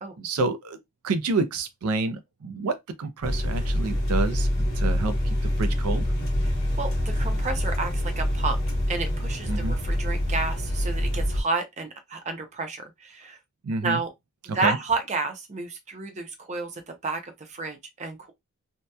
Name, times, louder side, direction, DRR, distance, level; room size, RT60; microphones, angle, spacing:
voice 1, 0.2-0.8 1.0-5.2 5.6-6.1 9.5-9.8 13.6-14.0 14.5-14.8, right 3 dB, 85° right, 0.4 m, -28 dB
sound 1, 3.2-11.4, equal, 45° left, 1.0 m, -26 dB
voice 2, 6.8-8.6 8.9-13.4 13.8-14.1 14.5-18.3, right 3 dB, 30° right, 0.5 m, -31 dB
2.8 x 2.1 x 2.2 m
head